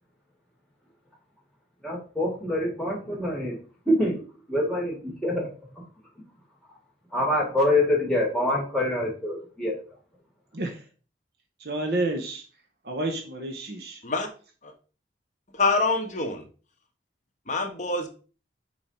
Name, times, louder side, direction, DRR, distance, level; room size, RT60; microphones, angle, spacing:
voice 1, 1.8-3.6 3.9-4.2 4.5-5.5 7.1-9.8, left 1 dB, 5° left, 2.5 m, -25 dB
voice 2, 11.6-12.4 12.8-14.0, right 2 dB, 60° right, 0.9 m, -30 dB
voice 3, 15.5-16.4 17.5-18.1, left 3 dB, 40° left, 1.2 m, -25 dB
5.5 x 4.9 x 4.3 m
head